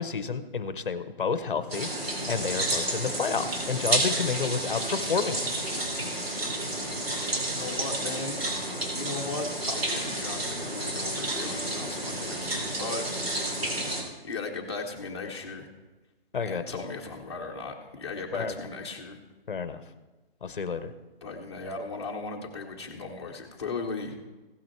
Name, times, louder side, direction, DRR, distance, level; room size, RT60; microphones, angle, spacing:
voice 1, 0.0-1.9 2.3-5.5 16.3-16.8 18.3-18.7 19.5-19.8 20.4-20.9, left 5 dB, 55° left, 12 dB, 0.9 m, -30 dB
sound 1, 1.7-14.0, right 1 dB, 75° right, 3.1 m, -31 dB
voice 2, 7.5-8.3 9.0-13.0 14.2-15.7 16.4-19.2 21.2-24.2, left 3 dB, 25° left, 0 dB, 1.2 m, -37 dB
16.5 x 6.1 x 4.5 m, 1.2 s
hypercardioid pair, 175°, 31 cm